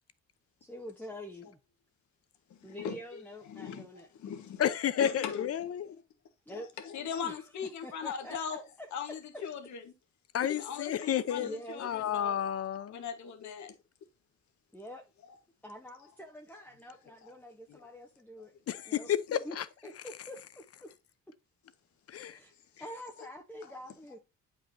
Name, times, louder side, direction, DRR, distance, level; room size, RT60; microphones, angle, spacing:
voice 1, 0.6-1.6 2.6-4.1 6.5-6.7 7.2-7.3 7.8-8.9 11.3-11.9 14.7-15.1 15.6-18.5 18.9-19.1 19.4-19.6 19.8-20.4 20.8-20.9 22.3-22.5 22.8-24.2, equal, 5° left, 1.0 m, -45 dB
voice 2, 2.6-4.6 5.0-5.5 6.5-8.6 8.9-9.8 10.5-12.4 12.9-13.7 17.2-17.3 17.7-17.8 19.3-19.4 23.6-23.8, left 7 dB, 70° left, 1.5 m, -40 dB
voice 3, 4.6-5.9 10.3-11.5 11.8-13.0 18.7-19.7 22.1-22.4, left 9 dB, 50° left, 0.7 m, -31 dB
8.6 x 5.4 x 2.7 m
cardioid pair, 90°, 30 cm